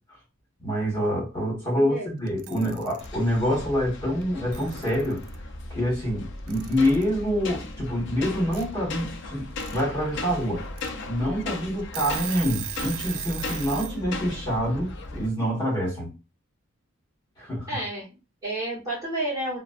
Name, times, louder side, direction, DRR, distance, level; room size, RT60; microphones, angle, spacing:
voice 1, 0.6-5.2 5.7-10.6 11.1-16.1 17.4-17.7, equal, 25° left, 1.4 m, -26 dB
voice 2, 1.7-2.1 2.4-2.7 17.7-19.6, right 1 dB, 15° right, 1.2 m, -31 dB
Alarm / Clock, 2.3-3.1 4.2-4.3 4.5-5.4 6.5-7.1 8.5-8.6 9.4-9.8 10.2-10.3 10.8-10.9 11.4-11.5 11.8-14.0, right 12 dB, 85° right, 0.3 m, -37 dB
sound 1, 3.0-15.3, left 2 dB, 60° left, 0.4 m, -37 dB
2.5 x 2.1 x 2.4 m
head